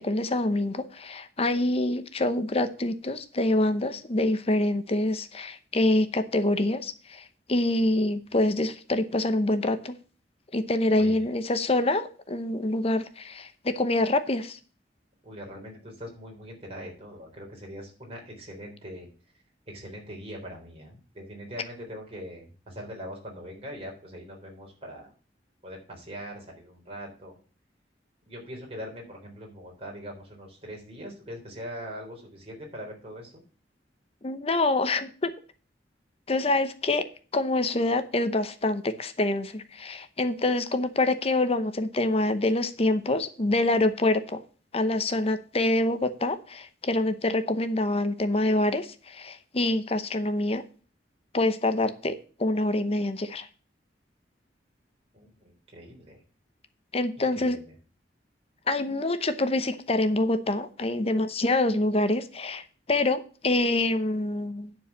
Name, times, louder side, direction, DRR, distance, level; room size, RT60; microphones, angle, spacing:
voice 1, 0.0-10.0 10.5-14.6 34.2-35.3 36.3-37.0 37.3-44.4 44.7-50.6 51.3-53.5 56.9-57.6 58.7-64.8, left 2 dB, 35° left, 11 dB, 0.8 m, -26 dB
voice 2, 15.2-19.1 19.7-25.1 25.6-27.4 28.3-33.4 55.1-56.2 57.2-57.7, equal, 35° right, -1 dB, 3.8 m, -42 dB
10.0 x 4.7 x 7.2 m, 0.38 s
head